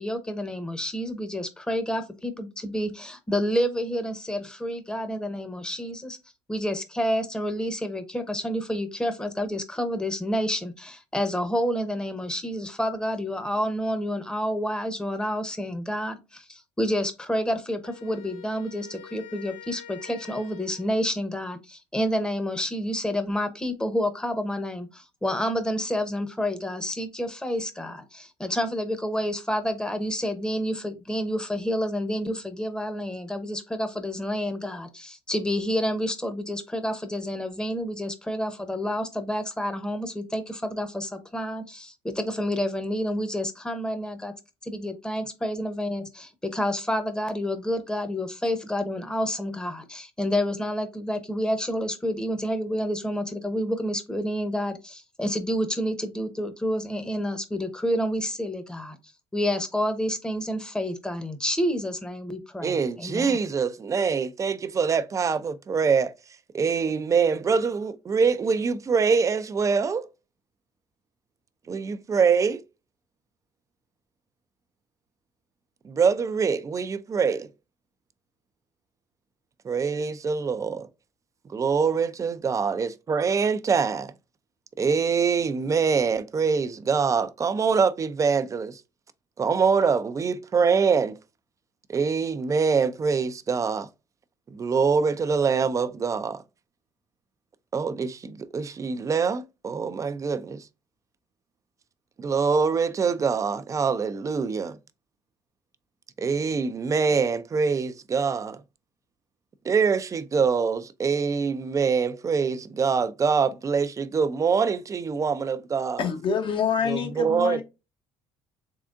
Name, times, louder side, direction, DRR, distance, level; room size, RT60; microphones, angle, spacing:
voice 1, 0.0-6.2 6.5-44.3 44.6-59.0 59.3-63.4, equal, 5° left, 0.9 m, -29 dB
Wind instrument woodwind instrument, 17.8-21.2, left 8 dB, 80° left, 1.0 m, -46 dB
voice 2, 62.6-66.1 66.5-70.1 71.7-72.6 75.8-77.5 79.6-80.9 81.5-84.1 84.8-88.8 89.4-91.2 91.9-93.9 94.5-96.4 97.7-100.6 102.2-104.8 106.2-108.6 109.6-116.0 116.9-117.6, right 5 dB, 30° right, 0.5 m, -24 dB
voice 3, 116.0-117.6, left 6 dB, 50° left, 0.9 m, -26 dB
3.7 x 3.4 x 2.5 m
supercardioid pair, 90°, 11 cm